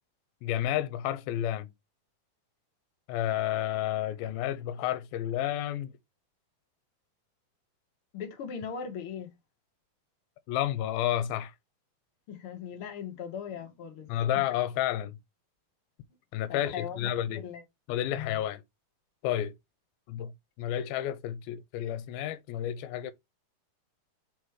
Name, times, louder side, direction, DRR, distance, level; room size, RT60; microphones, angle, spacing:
voice 1, 0.4-1.7 3.1-5.9 10.5-11.5 14.1-15.2 16.3-17.4 17.9-18.6 19.2-19.5 20.1-20.3 20.6-23.1, left 12 dB, 85° left, 2.5 m, -31 dB
voice 2, 8.1-9.3 12.3-14.1 16.5-17.6 18.1-18.4, left 7 dB, 55° left, 1.6 m, -39 dB
5.0 x 4.4 x 4.7 m
omnidirectional pair, 4.2 m